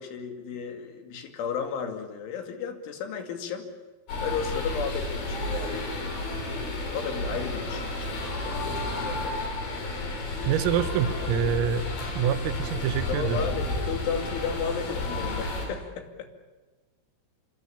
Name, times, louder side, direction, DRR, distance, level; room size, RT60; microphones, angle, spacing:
voice 1, 0.0-3.7 4.2-5.9 6.9-9.6 13.1-16.3, left 7 dB, 70° left, 5 dB, 4.8 m, -34 dB
sound 1, 4.1-15.7, left 2 dB, 50° left, 6.6 m, -31 dB
voice 2, 10.5-11.9 12.2-13.4, right 8 dB, 85° right, 10 dB, 3.9 m, -26 dB
26.0 x 25.0 x 7.1 m, 1.3 s
omnidirectional pair, 5.9 m